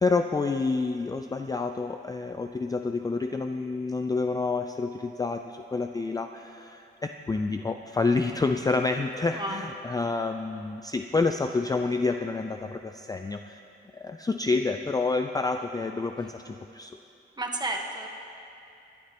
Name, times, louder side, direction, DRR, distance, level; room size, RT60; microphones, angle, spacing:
voice 1, 0.0-13.6 13.9-17.0, left 3 dB, 20° left, 6 dB, 0.3 m, -28 dB
voice 2, 17.4-18.1, right 2 dB, 20° right, 1 dB, 1.3 m, -31 dB
21.5 x 11.5 x 3.0 m, 2.7 s
wide cardioid pair, 130°, 21 cm